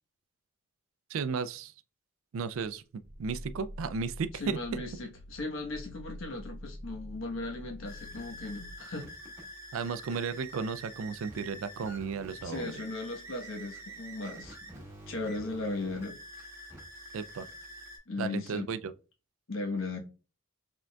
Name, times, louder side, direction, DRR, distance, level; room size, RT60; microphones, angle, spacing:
voice 1, 1.1-1.7 2.3-2.8 3.2-4.8 9.7-12.7 17.1-17.5 18.2-18.9, right 5 dB, 75° right, 0.3 m, -34 dB
Growling, 3.0-8.9, left 1 dB, 55° right, 0.8 m, -46 dB
voice 2, 4.4-9.1 12.4-14.7 15.1-16.2 18.1-18.7 19.5-20.0, left 2 dB, 70° left, 1.1 m, -37 dB
sound 1, 7.8-18.0, right 1 dB, 15° right, 1.1 m, -47 dB
5.0 x 3.6 x 2.2 m
head